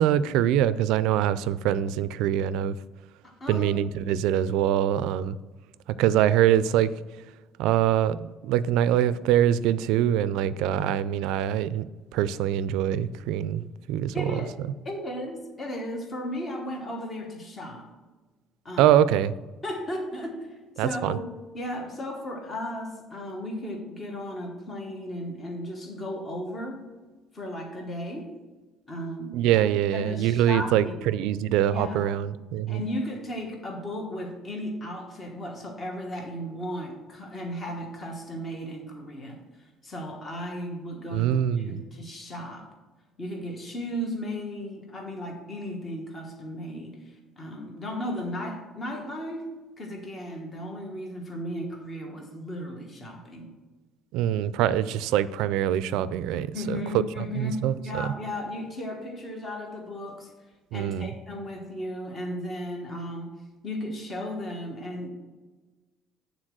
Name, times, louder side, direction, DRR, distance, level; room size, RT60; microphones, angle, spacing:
voice 1, 0.0-2.8 3.5-5.4 6.0-6.9 7.6-11.9 12.1-13.6 13.9-14.4 18.8-19.3 20.8-21.2 29.3-32.8 41.1-41.8 54.1-58.1 60.7-61.1, right 11 dB, 80° right, 16 dB, 0.3 m, -24 dB
voice 2, 3.2-3.7 14.1-14.6 14.8-17.9 18.6-18.9 19.6-21.2 21.5-26.8 27.3-28.3 28.9-29.6 29.9-31.1 31.7-32.0 32.7-39.4 39.8-42.7 43.2-53.5 56.5-60.3 60.7-63.3 63.6-65.1, equal, 20° left, 1 dB, 1.2 m, -35 dB
8.8 x 4.0 x 6.1 m, 1.2 s
cardioid pair, 175°, 0 cm